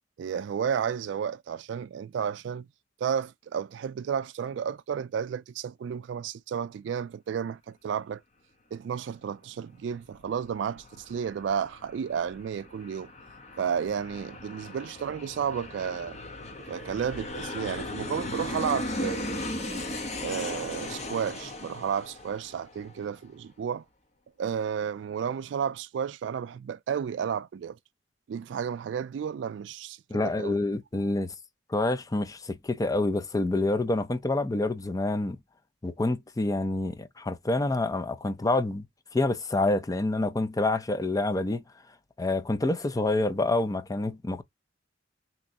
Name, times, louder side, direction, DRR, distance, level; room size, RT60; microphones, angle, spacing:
voice 1, 0.2-2.7 3.0-8.2 8.7-13.1 13.6-16.2 16.7-19.5 20.2-23.8 24.4-27.8 28.3-30.6, right 7 dB, 65° right, 0.3 m, -32 dB
Aircraft, 9.9-23.2, left 1 dB, 35° left, 0.8 m, -37 dB
voice 2, 30.1-31.3 31.7-35.4 35.8-38.9 39.1-41.6 42.2-44.4, left 2 dB, 20° left, 0.5 m, -27 dB
3.5 x 3.0 x 2.6 m
head